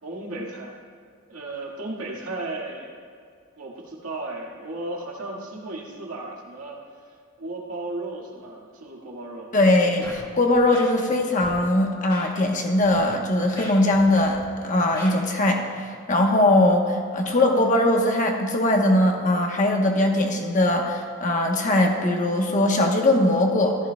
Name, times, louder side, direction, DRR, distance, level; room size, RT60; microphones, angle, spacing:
voice 1, 0.0-0.8 1.3-2.9 3.6-6.8 7.4-9.5, right 2 dB, 85° right, -2 dB, 1.9 m, -35 dB
voice 2, 9.5-23.8, left 1 dB, 35° left, 2 dB, 1.1 m, -21 dB
Scratching (performance technique), 10.0-10.2 10.5-11.1 11.4-11.6 12.1-12.2 12.8-13.0 13.4-14.4 14.8-15.1, left 1 dB, 20° left, 1.7 m, -40 dB
14.5 x 13.5 x 2.3 m, 2.2 s
head